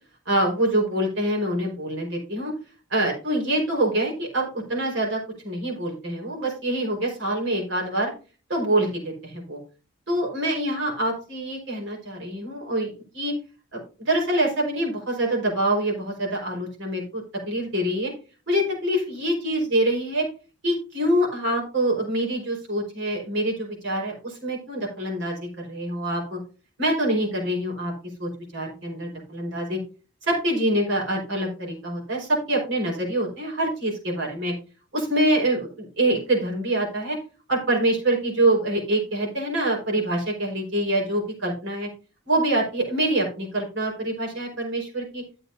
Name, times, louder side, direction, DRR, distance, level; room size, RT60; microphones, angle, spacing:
voice 1, 0.3-2.5 2.9-8.1 8.5-9.6 10.1-13.3 13.7-18.1 18.5-20.2 20.6-25.4 25.6-26.4 26.8-27.9 28.2-29.8 30.2-34.5 34.9-37.2 37.5-41.9 42.3-45.2, right 1 dB, 65° right, -2 dB, 4.7 m, -25 dB
12.5 x 8.0 x 2.7 m, 0.35 s
head